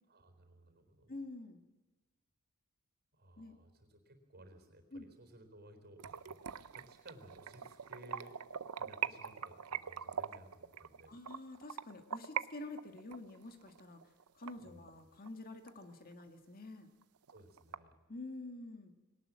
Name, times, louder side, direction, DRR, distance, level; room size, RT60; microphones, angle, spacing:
voice 1, 0.1-1.1 3.1-8.4 8.8-11.2 14.6-14.9 17.3-17.9, right 1 dB, 50° right, 7 dB, 4.0 m, -58 dB
voice 2, 1.1-1.6 3.4-3.6 4.9-5.1 11.1-14.0 14.3-16.9 18.1-18.9, left 2 dB, 45° left, 7 dB, 1.7 m, -48 dB
sound 1, 6.0-12.4 12.8-15.3 15.7-15.8 16.2-16.3 16.6-16.7 17.0-17.8, right 8 dB, 85° right, 0.7 m, -42 dB
21.5 x 18.5 x 7.5 m, 1.2 s
head